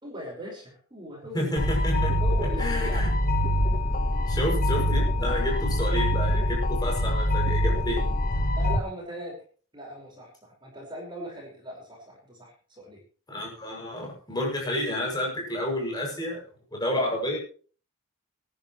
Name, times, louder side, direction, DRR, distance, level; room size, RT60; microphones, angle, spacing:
voice 1, 0.0-1.6 2.2-3.0 5.2-5.3 8.6-9.4 9.7-13.0, equal, 20° right, 0 dB, 5.3 m, -39 dB
voice 2, 1.3-3.1 4.3-8.2 13.3-16.4 16.7-17.4, left 1 dB, 20° left, -1 dB, 6.8 m, -30 dB
sound 1, 1.6-8.8, equal, 40° left, 1.4 m, -24 dB
23.5 x 11.0 x 3.2 m, 0.42 s
head